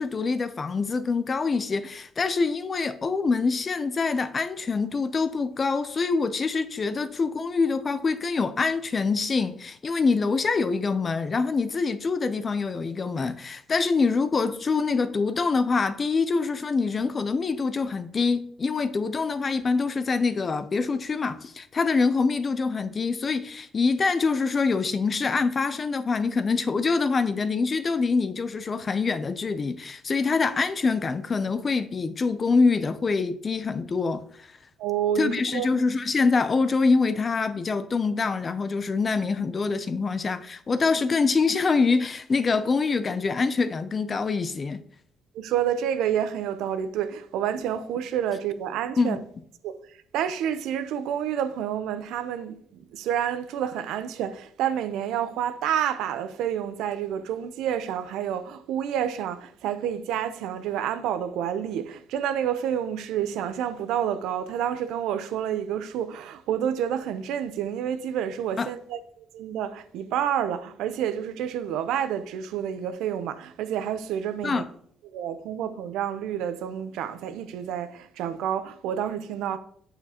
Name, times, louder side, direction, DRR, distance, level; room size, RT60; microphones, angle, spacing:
voice 1, 0.0-34.5 35.2-44.8 49.0-49.2 68.6-68.7 74.4-74.7, left 4 dB, 25° left, 0.4 m, -25 dB
voice 2, 34.8-35.8 45.3-49.2 49.6-74.6 75.1-79.6, right 9 dB, 80° right, 0.6 m, -29 dB
8.6 x 6.8 x 2.9 m
cardioid pair, 175°, 0 cm